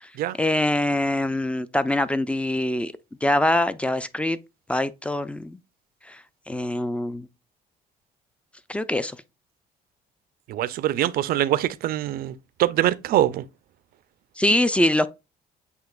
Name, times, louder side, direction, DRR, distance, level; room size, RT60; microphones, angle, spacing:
voice 1, 0.4-2.9 3.2-4.4 4.7-5.6 6.1-6.2 6.5-7.3 8.7-9.1 14.4-15.1, left 1 dB, 5° left, 0.3 m, -23 dB
voice 2, 10.5-13.5, right 13 dB, 60° right, 0.4 m, -23 dB
7.9 x 2.8 x 2.3 m
cardioid pair, 110°, 17 cm